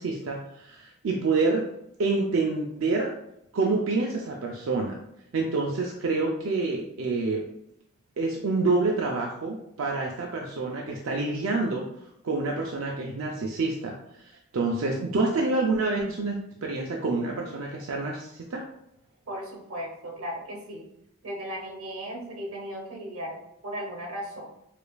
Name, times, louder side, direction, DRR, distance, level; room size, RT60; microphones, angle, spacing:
voice 1, 0.0-1.7 2.0-3.1 3.5-5.0 5.3-7.4 8.2-11.8 12.2-18.6, right 3 dB, 70° right, 0 dB, 0.4 m, -27 dB
voice 2, 19.3-20.9 21.2-23.4 23.6-24.4, equal, 85° right, 0 dB, 0.8 m, -36 dB
4.9 x 2.5 x 2.3 m, 0.79 s
head